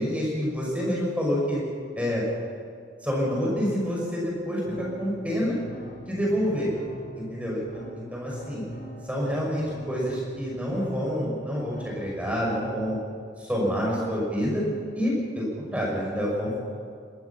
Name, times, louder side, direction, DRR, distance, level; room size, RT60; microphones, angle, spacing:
voice 1, 0.0-1.6 2.0-2.3 3.0-5.6 6.1-6.7 7.1-7.6 7.9-8.6 9.1-13.0 13.4-14.6 14.9-16.5, equal, 5° right, -4 dB, 6.2 m, -27 dB
sound 1, 4.7-12.7, right 1 dB, 50° left, 3.6 m, -43 dB
23.0 x 19.0 x 6.0 m, 2.3 s
head